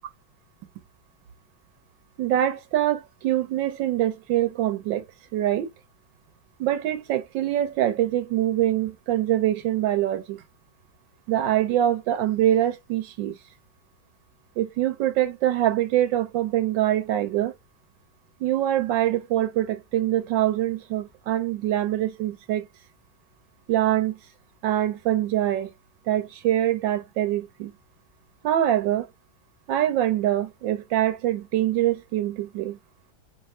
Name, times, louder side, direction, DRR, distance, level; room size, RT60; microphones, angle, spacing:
voice 1, 2.2-5.0 5.3-5.7 6.6-10.4 11.3-13.4 14.6-17.5 18.4-22.7 23.7-24.1 24.6-25.7 26.1-27.7 28.4-29.1 29.7-32.8, right 12 dB, 80° right, 1.3 m, -24 dB
5.7 x 3.0 x 3.1 m
omnidirectional pair, 2.1 m